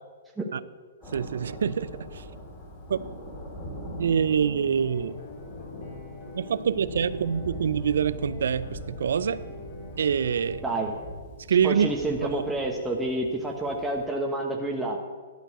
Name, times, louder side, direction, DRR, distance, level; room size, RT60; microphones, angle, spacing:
Thunder, 1.0-14.1, equal, 20° left, 3.1 m, -42 dB
voice 1, 1.1-2.2 2.9-3.0 4.0-5.1 6.4-9.4 10.0-10.6 11.5-11.9 12.3-12.4, right 7 dB, 70° right, 16 dB, 0.5 m, -25 dB
sound 1, 4.6-11.1, left 4 dB, 50° left, 2.7 m, -44 dB
voice 2, 11.6-15.0, right 2 dB, 5° right, -1 dB, 1.1 m, -29 dB
11.5 x 4.6 x 8.2 m, 1.5 s
hypercardioid pair, 130°, 0 cm